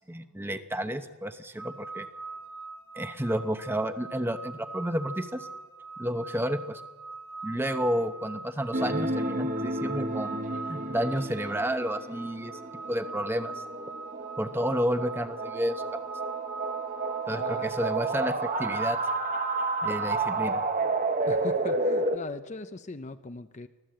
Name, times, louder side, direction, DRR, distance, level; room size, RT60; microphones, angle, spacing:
voice 1, 0.0-2.1 2.9-5.5 6.0-6.8 7.4-10.4 10.7-12.5 12.9-13.6 14.4-16.1 17.3-19.0 19.8-20.6, equal, 10° right, 9 dB, 0.8 m, -31 dB
sound 1, 1.6-20.4, right 3 dB, 70° right, 1.0 m, -42 dB
sound 2, 8.7-22.2, right 2 dB, 35° right, 1.0 m, -31 dB
voice 2, 17.3-17.8 21.3-23.7, left 3 dB, 30° left, 10 dB, 0.6 m, -40 dB
24.5 x 15.5 x 7.7 m, 1.3 s
head